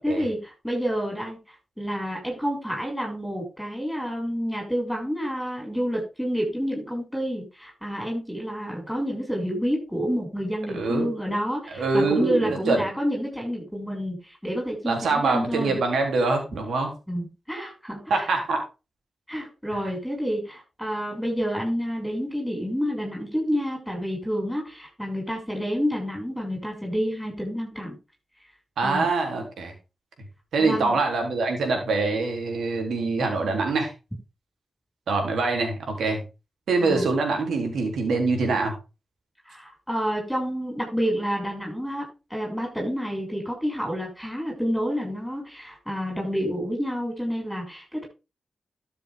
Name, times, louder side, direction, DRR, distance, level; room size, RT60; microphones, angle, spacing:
voice 1, 0.0-1.4 1.8-15.8 17.1-18.3 19.3-28.0 28.8-29.1 30.6-30.9 36.8-37.1 39.5-42.0 42.3-48.0, equal, ahead, 0 dB, 6.5 m, -29 dB
voice 2, 10.7-11.1 11.7-12.8 14.9-16.9 18.1-18.6 19.7-19.8 28.8-29.7 30.5-33.9 35.1-36.2 36.7-38.7, right 3 dB, 80° right, 4 dB, 3.4 m, -24 dB
12.5 x 7.0 x 3.7 m, 0.29 s
supercardioid pair, 40°, 0 cm